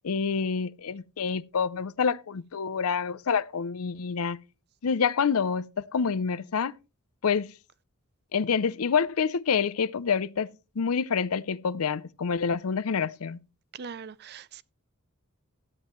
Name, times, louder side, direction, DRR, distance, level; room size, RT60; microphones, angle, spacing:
voice 1, 0.0-4.4 4.8-6.7 7.2-7.5 8.3-10.5 10.8-13.4, left 6 dB, 80° left, 0.6 m, -27 dB
voice 2, 13.7-14.6, right 6 dB, 50° right, 0.5 m, -41 dB
13.0 x 9.2 x 3.1 m
head